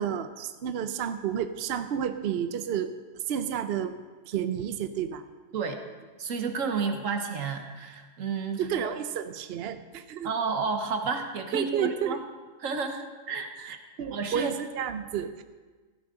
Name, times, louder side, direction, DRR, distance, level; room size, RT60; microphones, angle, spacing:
voice 1, 0.0-3.9 4.3-5.2 8.6-10.3 11.5-12.2 14.0-15.4, right 8 dB, 60° right, 10 dB, 0.8 m, -31 dB
voice 2, 6.2-8.9 10.2-12.2 12.6-13.8 14.1-14.5, right 5 dB, 80° right, 6 dB, 1.5 m, -31 dB
15.5 x 13.0 x 3.8 m, 1.4 s
omnidirectional pair, 1.3 m